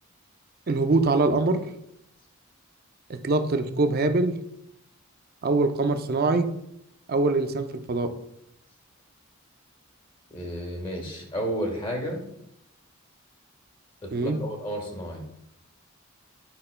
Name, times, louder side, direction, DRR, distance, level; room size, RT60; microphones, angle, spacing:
voice 1, 0.7-1.6 3.1-4.4 5.4-6.5 7.1-8.1 14.1-14.4, right 3 dB, 45° right, 8 dB, 0.5 m, -23 dB
voice 2, 10.3-12.2 14.0-15.2, equal, 25° left, 0 dB, 1.3 m, -32 dB
8.7 x 5.5 x 2.2 m, 0.79 s
head